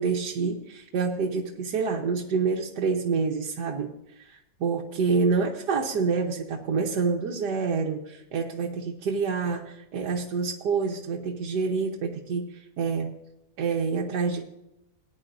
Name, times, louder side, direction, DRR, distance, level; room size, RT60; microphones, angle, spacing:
voice 1, 0.0-3.9 4.2-13.1 13.6-14.5, right 5 dB, 80° right, -1 dB, 1.7 m, -27 dB
18.0 x 10.0 x 2.6 m, 0.85 s
omnidirectional pair, 1.8 m